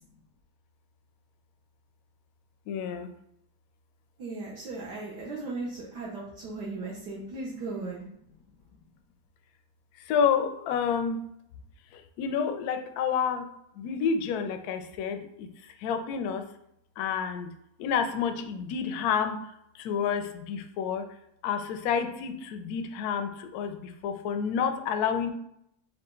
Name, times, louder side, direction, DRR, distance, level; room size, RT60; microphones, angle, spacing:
voice 1, 2.7-3.1 10.1-11.2 12.2-13.5 13.8-15.5 15.8-16.4 17.0-17.5 17.8-19.4 19.8-21.0 21.4-23.8 24.0-25.3, left 7 dB, 75° left, 7 dB, 0.9 m, -29 dB
voice 2, 4.2-8.1, right 3 dB, 65° right, -6 dB, 1.3 m, -37 dB
4.9 x 2.4 x 3.7 m, 0.75 s
omnidirectional pair, 2.0 m